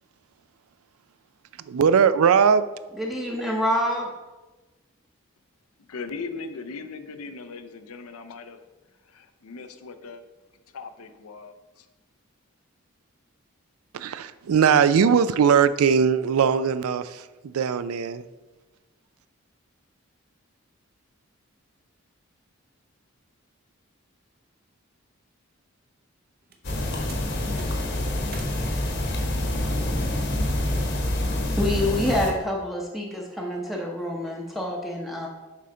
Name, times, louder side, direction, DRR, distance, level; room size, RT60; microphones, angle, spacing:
voice 1, 1.7-2.7 13.9-18.2, right 7 dB, 85° right, 14 dB, 0.4 m, -20 dB
voice 2, 3.0-4.1 31.6-35.3, left 1 dB, ahead, -2 dB, 0.7 m, -27 dB
voice 3, 5.8-8.6 9.1-10.2 10.7-11.9, left 4 dB, 90° left, 9 dB, 0.6 m, -39 dB
sound 1, 26.4-28.6 29.1-30.9 31.2-31.6 31.9-32.5, right 3 dB, 45° right, 0.7 m, -47 dB
sound 2, 26.6-32.3, left 1 dB, 50° left, 1.0 m, -26 dB
7.4 x 5.6 x 3.7 m, 1.2 s
head